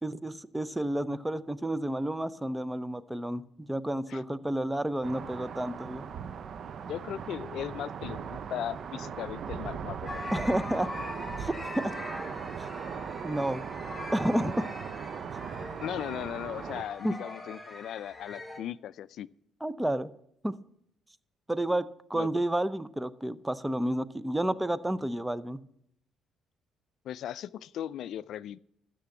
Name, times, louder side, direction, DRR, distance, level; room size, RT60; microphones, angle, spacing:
voice 1, 0.0-6.1 10.3-10.9 11.4-11.5 11.8-11.9 13.2-13.6 14.1-14.7 17.0-17.2 19.6-20.1 20.4-20.6 21.5-25.6, right 1 dB, 10° right, 16 dB, 0.7 m, -30 dB
sound 1, 5.0-16.8, right 7 dB, 55° right, 0.6 m, -39 dB
voice 2, 6.9-10.3 15.8-19.3 22.1-22.3 27.0-28.6, left 11 dB, 70° left, 19 dB, 0.4 m, -37 dB
sound 2, 10.0-18.6, left 1 dB, 10° left, 5.5 m, -42 dB
13.0 x 7.7 x 7.1 m, 0.73 s
supercardioid pair, 70°, 0 cm